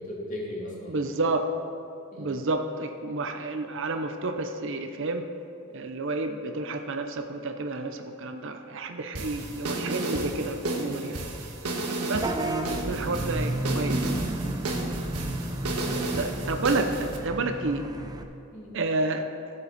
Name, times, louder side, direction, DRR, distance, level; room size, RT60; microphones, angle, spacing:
voice 1, 0.0-1.2 2.1-2.3 15.8-16.1 18.5-18.7, left 1 dB, 35° left, -5 dB, 2.3 m, -38 dB
voice 2, 0.9-1.5 2.2-5.3 5.7-11.3 12.0-14.0 16.2-17.8 18.7-19.3, right 2 dB, 60° right, 7 dB, 0.6 m, -30 dB
sound 1, 9.2-17.2, right 2 dB, 90° right, 1.4 m, -32 dB
Vehicle horn car horn honking / Bus, 12.1-18.2, right 1 dB, 15° right, 0.5 m, -32 dB
14.5 x 7.6 x 4.1 m, 2.8 s
head